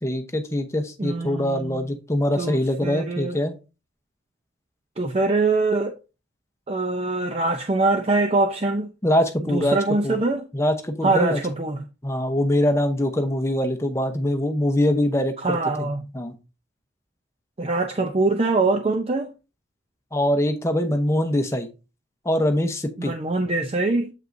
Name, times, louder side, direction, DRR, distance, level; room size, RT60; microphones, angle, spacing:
voice 1, 0.0-3.6 9.0-10.2 10.5-11.4 12.0-15.9 16.1-16.3 20.1-21.7 22.2-23.1, left 1 dB, 15° left, 0.8 m, -23 dB
voice 2, 1.0-1.8 2.4-3.4 5.0-5.9 6.7-8.9 9.5-10.5 11.0-11.8 15.4-16.1 17.6-19.3 23.0-24.1, right 3 dB, 30° right, 0.5 m, -23 dB
7.6 x 5.3 x 2.6 m
head